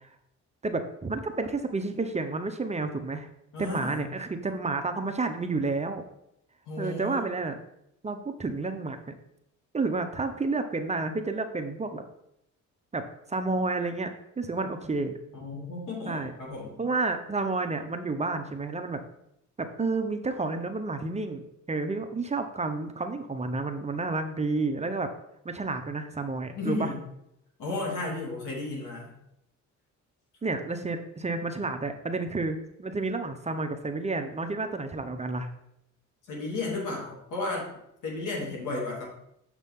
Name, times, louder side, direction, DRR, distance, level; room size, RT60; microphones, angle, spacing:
voice 1, 0.6-3.3 3.6-6.0 6.8-7.6 8.0-9.2 9.7-12.0 12.9-15.2 16.1-16.3 16.8-19.0 19.6-21.4 21.7-25.1 25.4-26.9 30.4-35.5, right 3 dB, 20° right, 7 dB, 0.7 m, -30 dB
voice 2, 3.5-4.0 6.7-7.2 15.3-16.8 26.5-27.0 27.6-29.1 36.3-37.7 38.0-39.1, left 2 dB, 80° left, -2 dB, 2.6 m, -33 dB
6.6 x 5.9 x 3.6 m, 0.78 s
cardioid pair, 90°, 30 cm